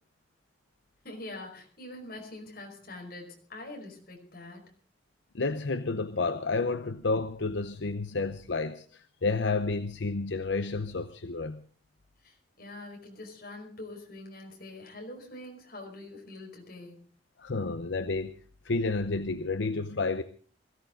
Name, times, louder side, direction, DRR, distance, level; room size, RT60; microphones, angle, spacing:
voice 1, 1.0-4.6 12.2-17.1, left 2 dB, 50° left, 1 dB, 5.2 m, -44 dB
voice 2, 5.3-11.6 17.4-18.3 18.6-20.2, left 3 dB, 70° left, 11 dB, 0.8 m, -30 dB
21.0 x 15.5 x 3.9 m, 0.41 s
head